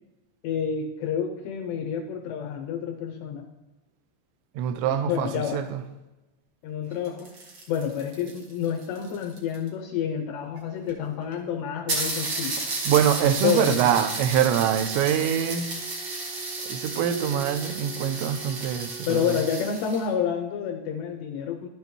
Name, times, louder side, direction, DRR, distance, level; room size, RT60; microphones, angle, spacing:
voice 1, 0.4-3.5 4.9-5.7 6.6-7.3 7.7-12.6 13.4-13.8 19.1-21.7, left 8 dB, 85° left, 2.5 m, -29 dB
voice 2, 4.6-5.8 12.6-15.8 16.6-19.4, right 9 dB, 80° right, 2.7 m, -24 dB
sound 1, 6.9-9.7 10.6-10.7 10.9-11.0 11.3-11.4 11.9-20.1, right 3 dB, 65° right, 1.6 m, -33 dB
12.0 x 9.3 x 3.0 m
omnidirectional pair, 5.6 m